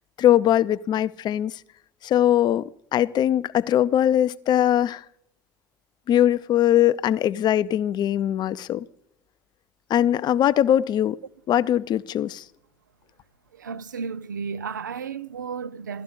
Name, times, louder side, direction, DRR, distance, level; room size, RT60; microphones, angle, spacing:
voice 1, 0.2-1.6 2.0-5.0 6.1-8.9 9.9-11.2 11.5-12.4, left 11 dB, 45° left, 0.6 m, -21 dB
voice 2, 13.5-16.0, right 6 dB, 85° right, 0.5 m, -33 dB
16.5 x 13.0 x 5.5 m
figure-of-eight pair, 60°, 10 cm